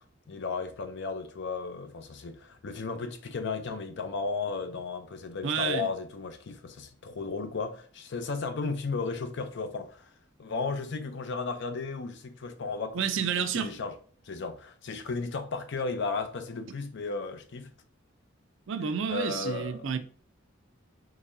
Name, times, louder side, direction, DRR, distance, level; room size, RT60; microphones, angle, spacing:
voice 1, 0.3-10.1 10.4-13.9 14.2-17.7 19.1-19.9, left 4 dB, 60° left, 0.5 m, -34 dB
voice 2, 5.4-5.9 12.9-13.7 18.7-20.0, right 6 dB, 70° right, 0.5 m, -30 dB
4.0 x 3.0 x 2.6 m
head